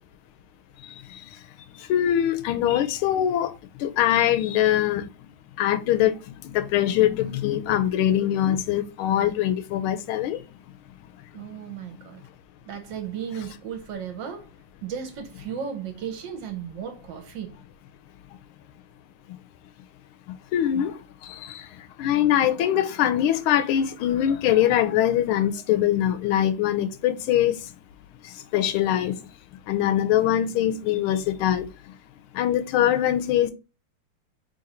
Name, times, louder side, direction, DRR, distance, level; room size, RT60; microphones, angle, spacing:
voice 1, 1.9-3.5 3.8-5.0 5.6-6.1 6.5-10.4 20.5-20.9 21.4-21.6 22.0-27.5 28.5-29.1 29.7-31.7 32.3-33.5, left 11 dB, 80° left, 1.4 m, -22 dB
voice 2, 7.2-7.6 11.3-12.3 12.7-14.5 14.8-17.6, right 8 dB, 65° right, 1.3 m, -35 dB
3.8 x 3.0 x 4.1 m
omnidirectional pair, 2.4 m